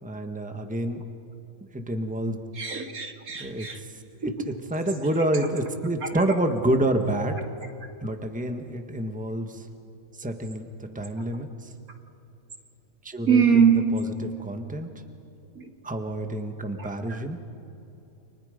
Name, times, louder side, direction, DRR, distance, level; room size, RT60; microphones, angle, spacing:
voice 1, 0.0-1.0 1.7-2.4 3.4-4.0 4.4-7.5 8.0-9.7 10.2-11.7 13.0-14.9 15.8-17.4, right 1 dB, 5° right, 6 dB, 1.4 m, -28 dB
voice 2, 2.5-3.8 5.2-5.5 6.0-6.2 13.3-13.9 15.5-15.7 16.8-17.2, right 6 dB, 80° right, 4 dB, 2.7 m, -23 dB
30.0 x 28.0 x 5.2 m, 2.9 s
omnidirectional pair, 1.5 m